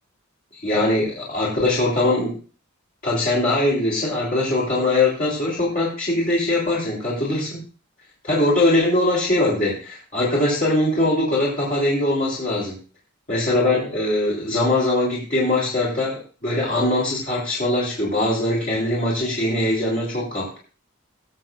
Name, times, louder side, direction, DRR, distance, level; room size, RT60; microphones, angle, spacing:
voice 1, 0.5-2.4 3.0-7.6 8.2-12.8 13.3-20.6, left 1 dB, 40° left, -6 dB, 3.6 m, -21 dB
21.0 x 7.6 x 2.5 m, 0.37 s
head